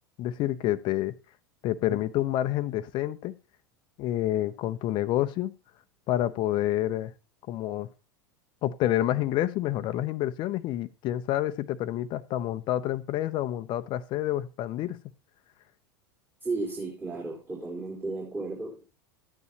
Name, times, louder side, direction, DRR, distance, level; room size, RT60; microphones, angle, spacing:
voice 1, 0.2-1.1 1.6-3.3 4.0-5.5 6.1-7.1 7.5-7.9 8.6-15.0, left 13 dB, 40° left, 0.7 m, -28 dB
voice 2, 16.4-18.8, right 3 dB, 20° right, 3.7 m, -34 dB
13.0 x 9.5 x 2.9 m
figure-of-eight pair, 85°, 12 cm